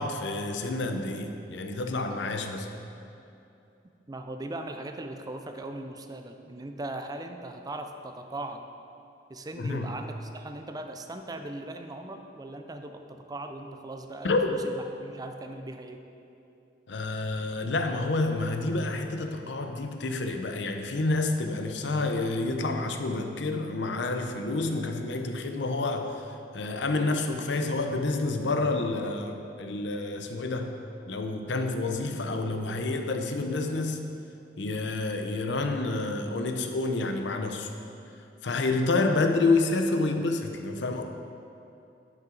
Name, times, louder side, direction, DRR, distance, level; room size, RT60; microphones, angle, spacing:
voice 1, 0.0-2.7 9.6-9.9 14.2-14.5 16.9-30.8 31.1-34.1 34.6-37.7 38.4-41.0, left 2 dB, 80° left, 5 dB, 0.7 m, -29 dB
voice 2, 4.1-8.7 9.3-16.0, right 2 dB, 20° right, 6 dB, 0.5 m, -39 dB
10.5 x 5.9 x 3.8 m, 2.7 s
head